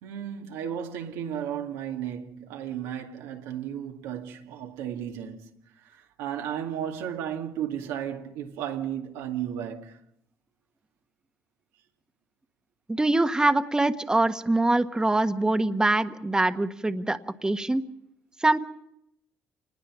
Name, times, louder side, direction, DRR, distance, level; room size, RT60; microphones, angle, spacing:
voice 1, 0.0-5.5 5.8-10.0, right 9 dB, 90° right, 2.3 m, -34 dB
voice 2, 12.9-17.8 18.4-18.6, right 2 dB, 15° right, 1.3 m, -24 dB
26.5 x 20.0 x 6.2 m
supercardioid pair, 75°, 5 cm